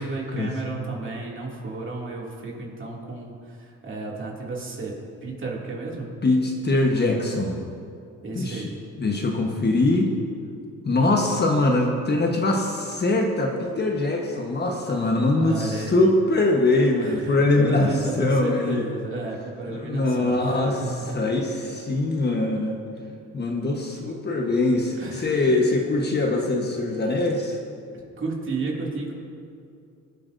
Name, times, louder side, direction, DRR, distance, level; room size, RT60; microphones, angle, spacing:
voice 1, 0.0-4.9 5.2-6.1 8.2-8.7 15.4-16.1 17.0-21.2 25.0-25.7 28.2-29.1, right 3 dB, 40° right, -3 dB, 2.6 m, -32 dB
voice 2, 6.2-7.6 8.3-8.7 9.0-10.1 10.8-18.8 19.7-20.8 21.1-22.8 23.3-27.6, left 2 dB, 35° left, 1 dB, 1.3 m, -22 dB
23.0 x 8.4 x 2.7 m, 2.4 s
cardioid pair, 90°, 30 cm